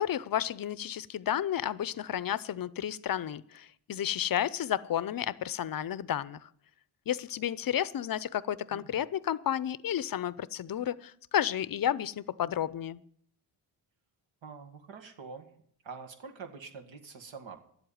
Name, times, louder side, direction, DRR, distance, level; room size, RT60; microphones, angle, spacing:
voice 1, 0.0-6.5 7.1-13.0, left 10 dB, 45° left, 18 dB, 0.7 m, -32 dB
voice 2, 8.7-9.0 14.4-15.5 15.8-17.6, right 5 dB, 70° right, 5 dB, 2.0 m, -45 dB
11.5 x 8.0 x 9.3 m, 0.64 s
cardioid pair, 80°, 48 cm